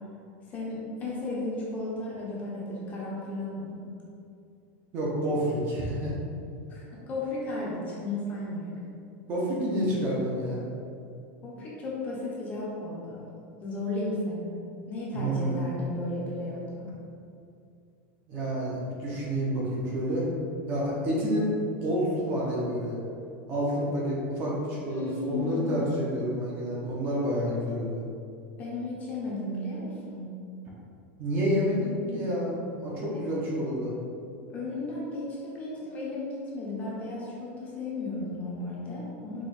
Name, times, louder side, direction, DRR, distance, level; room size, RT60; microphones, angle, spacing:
voice 1, 0.5-3.8 6.7-8.7 11.4-13.2 13.6-14.5 14.9-16.9 24.9-26.0 28.6-30.3 33.1-33.3 34.5-39.5, left 2 dB, 20° left, -5 dB, 0.8 m, -34 dB
voice 2, 4.9-6.1 9.3-10.6 15.1-15.7 18.3-20.3 20.7-21.5 21.8-23.0 23.5-28.0 31.2-32.5 32.8-33.9, equal, 30° right, -5 dB, 0.8 m, -29 dB
4.9 x 2.4 x 4.2 m, 2.5 s
supercardioid pair, 175°, 7 cm